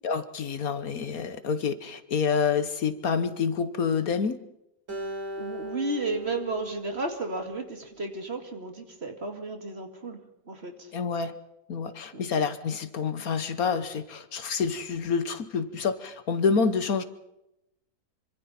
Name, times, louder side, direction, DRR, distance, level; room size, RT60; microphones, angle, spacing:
voice 1, 0.0-4.4 10.9-11.4 11.7-17.0, left 5 dB, 65° left, 12 dB, 1.5 m, -28 dB
Acoustic guitar, 4.9-8.2, right 1 dB, 65° right, 4.9 m, -39 dB
voice 2, 5.4-10.2 10.5-10.9 12.1-12.3, right 2 dB, 40° right, 5 dB, 2.6 m, -33 dB
26.5 x 25.0 x 4.3 m, 0.87 s
omnidirectional pair, 1.7 m